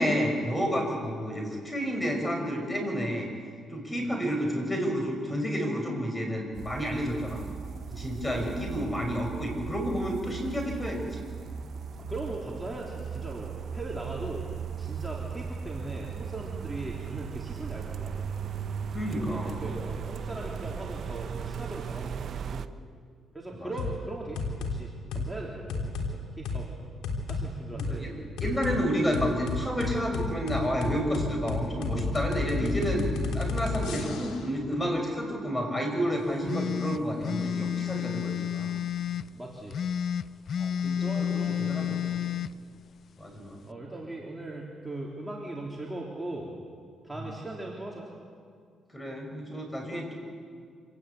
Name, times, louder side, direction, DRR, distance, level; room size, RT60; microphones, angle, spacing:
voice 1, 0.0-3.3 3.7-7.4 7.9-11.2 18.9-19.5 23.5-23.7 27.7-33.1 33.3-38.7 40.6-42.0 43.2-43.6 47.2-47.4 48.9-50.1, equal, 15° left, 3 dB, 6.2 m, -30 dB
sound 1, 6.5-22.7, right 7 dB, 60° right, 0.9 m, -37 dB
voice 2, 8.3-9.0 12.0-14.5 14.8-18.3 19.1-22.7 23.3-24.4 24.7-26.7 27.3-28.1 39.3-39.8 41.0-42.2 43.7-46.6 47.0-48.1, right 2 dB, 10° right, -3 dB, 3.6 m, -39 dB
sound 2, 23.8-24.0 24.4-24.8 25.1-25.3 25.7-26.1 26.5-26.6 27.0-27.4 27.8-27.9 28.4-28.8 29.1-34.4, left 4 dB, 90° left, 3.4 m, -31 dB
sound 3, 36.5-39.3 39.7-42.5, left 9 dB, 55° left, 0.5 m, -30 dB
26.5 x 18.5 x 8.5 m, 2.1 s
cardioid pair, 90°, 0 cm